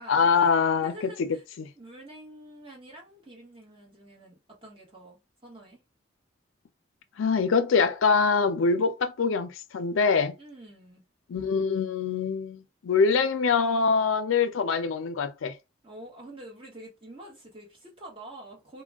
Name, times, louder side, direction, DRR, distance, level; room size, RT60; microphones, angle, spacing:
voice 1, 0.1-1.3 1.6-1.7 7.2-10.3 11.3-15.6, left 5 dB, 90° left, 0.4 m, -24 dB
voice 2, 0.8-1.4 1.7-5.8 10.4-11.0 15.8-18.8, right 1 dB, 25° right, 1.1 m, -47 dB
2.3 x 2.1 x 3.4 m
head